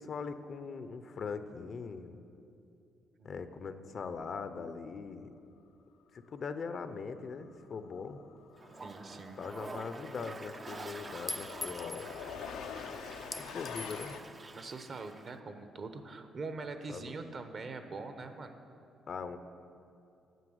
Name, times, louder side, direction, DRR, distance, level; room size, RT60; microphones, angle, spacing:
voice 1, 0.0-2.2 3.2-5.3 6.1-8.2 9.4-12.2 13.4-14.2 16.9-17.1 19.1-19.4, left 5 dB, 50° left, 10 dB, 0.6 m, -41 dB
sound 1, 7.4-7.6 7.9-14.2, left 6 dB, 90° left, 0.7 m, -46 dB
Toilet flush, 8.6-15.3, right 3 dB, 30° right, 0.5 m, -48 dB
voice 2, 8.8-9.4 14.5-18.5, right 3 dB, 45° right, 8 dB, 0.9 m, -43 dB
Chink clink, 11.3-12.1 13.3-14.2, left 2 dB, 15° left, 0.6 m, -41 dB
9.3 x 7.1 x 7.8 m, 2.7 s
cardioid pair, 90°, 0 cm